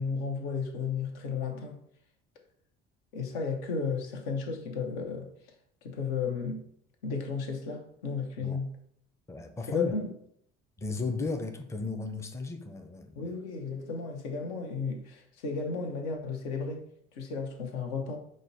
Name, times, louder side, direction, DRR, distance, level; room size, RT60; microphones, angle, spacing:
voice 1, 0.0-1.8 3.1-5.3 5.8-6.6 7.0-8.7 9.7-10.1 13.2-16.8 17.1-18.2, left 5 dB, 75° left, 0.8 m, -33 dB
voice 2, 9.3-9.9 10.8-13.3, left 3 dB, 10° left, 0.5 m, -35 dB
5.1 x 2.1 x 4.0 m
hypercardioid pair, 55°, 34 cm